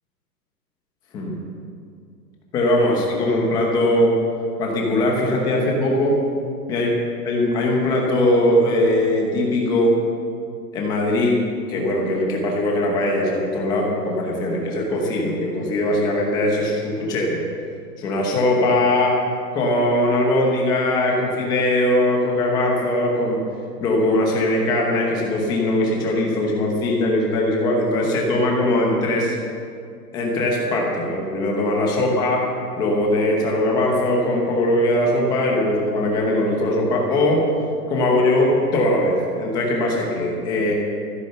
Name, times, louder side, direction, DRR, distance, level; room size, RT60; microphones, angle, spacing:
voice 1, 2.5-4.2 4.6-6.2 6.7-6.9 7.2-9.9 10.7-11.4 11.7-17.4 18.0-19.2 19.5-23.4 23.8-29.4 30.1-32.4 32.8-37.4 37.9-40.7, left 1 dB, 10° left, -1 dB, 1.0 m, -20 dB
14.5 x 10.0 x 6.8 m, 2.3 s
hypercardioid pair, 170°, 49 cm